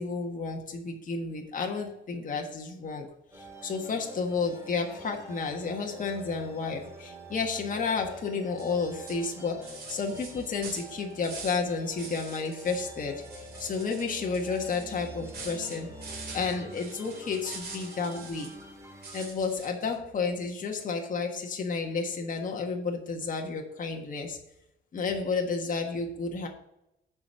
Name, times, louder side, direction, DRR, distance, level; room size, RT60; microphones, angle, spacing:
voice 1, 0.0-15.9 16.3-18.5 19.1-24.4 24.9-26.5, left 4 dB, 40° left, 1 dB, 1.5 m, -31 dB
sound 1, 3.3-19.3, right 1 dB, 15° right, 2.0 m, -46 dB
sound 2, 8.6-8.8 9.1-11.7 12.0-12.9 13.2-18.6 19.0-19.9, right 4 dB, 50° right, 2.3 m, -45 dB
6.9 x 5.2 x 6.4 m, 0.84 s
cardioid pair, 90°, 20 cm